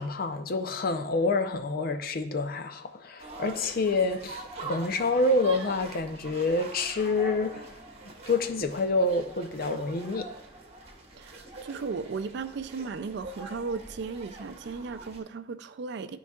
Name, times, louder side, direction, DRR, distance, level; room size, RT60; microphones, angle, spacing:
voice 1, 0.0-7.6 8.3-10.3, left 2 dB, 55° left, 0.6 m, -27 dB
sound 1, 3.2-15.2, right 2 dB, 35° right, 1.2 m, -44 dB
voice 2, 11.2-16.2, right 4 dB, 65° right, 0.4 m, -36 dB
13.0 x 4.7 x 2.3 m
head